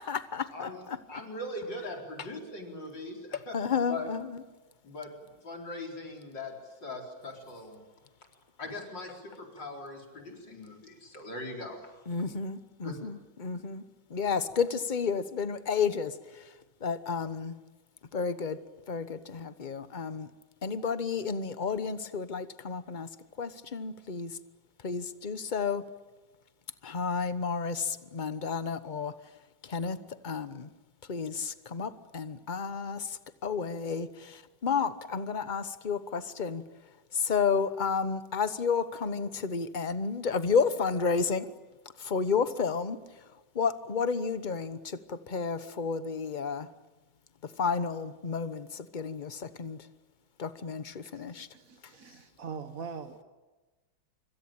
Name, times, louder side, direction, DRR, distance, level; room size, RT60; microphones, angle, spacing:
voice 1, 0.0-1.0 3.3-4.4 12.1-13.8 14.1-16.4 16.8-17.5 18.1-18.6 18.9-20.3 20.6-23.1 23.4-24.4 24.8-25.9 26.8-29.1 29.6-30.7 31.1-36.6 37.1-41.5 42.0-43.0 43.5-46.7 47.4-49.9 50.4-51.5, left 5 dB, 30° left, 13 dB, 0.9 m, -31 dB
voice 2, 1.1-3.5 3.9-4.1 4.8-5.1 5.4-7.8 8.6-12.0 12.8-13.1 13.5-13.6, left 2 dB, 65° left, 1 dB, 5.0 m, -40 dB
voice 3, 51.0-53.2, right 5 dB, 50° right, 9 dB, 1.5 m, -43 dB
26.0 x 25.0 x 8.9 m, 1.2 s
omnidirectional pair, 2.1 m